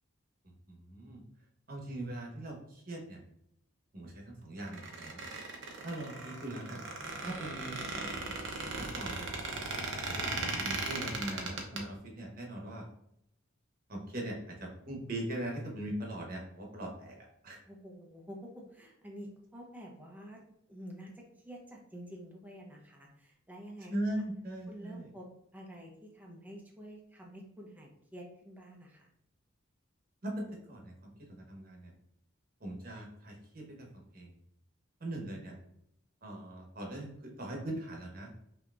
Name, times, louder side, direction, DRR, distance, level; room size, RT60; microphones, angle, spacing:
voice 1, 0.7-1.2 1.7-3.2 3.9-5.2 5.8-6.8 7.2-8.3 8.8-9.3 10.0-12.9 13.9-17.6 23.9-25.1 30.2-31.9 32.6-33.9 34.1-34.4 35.0-35.5 36.2-38.3, right 1 dB, 45° right, 0 dB, 1.1 m, -40 dB
Squeak, 4.6-11.8, right 3 dB, 65° right, 0.8 m, -38 dB
voice 2, 17.7-20.4 20.7-23.9 24.7-25.3 25.5-29.1, equal, 10° right, -1 dB, 0.7 m, -49 dB
5.6 x 2.9 x 2.5 m, 0.78 s
head